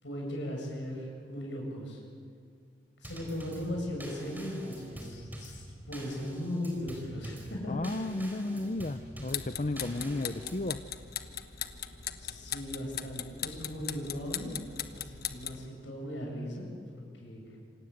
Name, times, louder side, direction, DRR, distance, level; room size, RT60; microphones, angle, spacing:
voice 1, 0.0-2.0 3.0-8.0 12.2-14.5 14.9-16.7 16.9-17.6, left 1 dB, 85° left, -1 dB, 8.0 m, -38 dB
Drum kit / Snare drum / Bass drum, 3.0-10.7, equal, 10° right, 4.6 m, -46 dB
voice 2, 7.7-10.9, left 2 dB, 40° left, 10 dB, 0.7 m, -34 dB
sound 1, 9.2-15.7, left 10 dB, 60° left, 1.2 m, -39 dB
27.5 x 26.0 x 8.1 m, 2.1 s
head